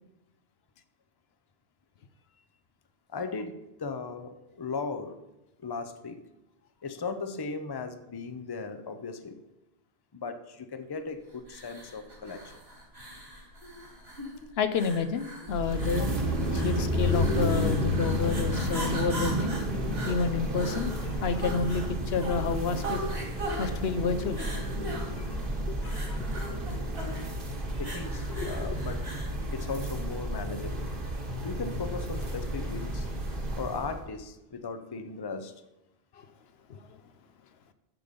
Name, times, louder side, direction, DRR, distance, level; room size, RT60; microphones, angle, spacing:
voice 1, 3.1-5.2 5.6-6.2 6.8-9.4 10.1-12.5 27.8-29.0 29.5-30.9 31.4-33.1 33.6-35.5, left 4 dB, 25° left, 9 dB, 0.7 m, -37 dB
sound 1, 11.4-29.4, right 1 dB, 75° right, 2.9 m, -40 dB
voice 2, 14.6-16.1 16.5-19.5 20.1-23.0 23.6-24.5 25.2-25.4 25.7-26.3 28.3-28.6 36.2-36.3 36.7-36.9, left 5 dB, 80° left, 10 dB, 1.0 m, -30 dB
sound 2, 15.5-34.0, equal, 55° right, 1.7 m, -31 dB
9.5 x 6.8 x 5.2 m, 0.93 s
omnidirectional pair, 1.0 m